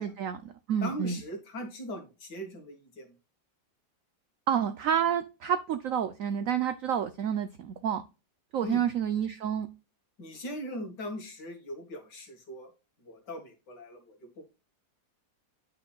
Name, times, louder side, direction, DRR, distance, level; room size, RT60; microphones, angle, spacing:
voice 1, 0.0-1.2 4.5-8.0 8.5-9.7, right 8 dB, 75° right, 11 dB, 0.7 m, -29 dB
voice 2, 0.8-3.1 8.6-8.8 10.2-12.7 13.0-14.4, equal, 65° left, 4 dB, 2.3 m, -40 dB
9.0 x 5.7 x 2.3 m, 0.29 s
omnidirectional pair, 2.0 m